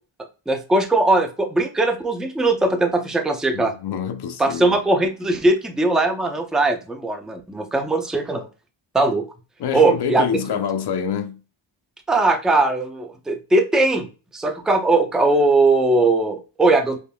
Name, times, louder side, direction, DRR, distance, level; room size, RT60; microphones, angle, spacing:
voice 1, 0.5-3.7 4.4-8.5 8.9-9.2 9.7-10.3 12.1-14.1 14.3-17.0, right 2 dB, ahead, 0.4 m, -19 dB
voice 2, 3.5-4.8 9.6-11.4, left 7 dB, 55° left, 0.6 m, -26 dB
5.4 x 2.6 x 2.2 m
wide cardioid pair, 110°, 48 cm